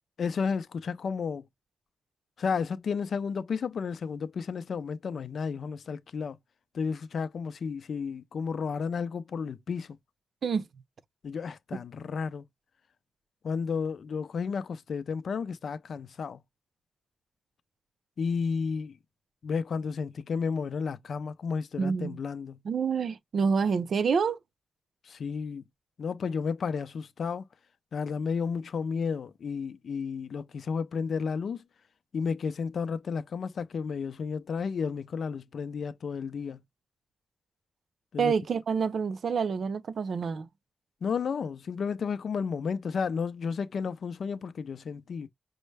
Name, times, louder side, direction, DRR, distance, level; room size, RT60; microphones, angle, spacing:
voice 1, 0.2-1.5 2.4-6.4 6.7-10.0 11.2-12.4 13.4-16.4 18.2-19.0 19.4-22.6 25.0-25.7 26.0-27.5 27.9-31.6 32.1-36.6 38.1-38.3 41.0-45.3, left 5 dB, 65° left, 0.4 m, -32 dB
voice 2, 21.8-22.2 22.7-24.4 38.2-40.5, right 6 dB, 65° right, 0.4 m, -27 dB
5.4 x 2.1 x 3.2 m
wide cardioid pair, 150°, 0 cm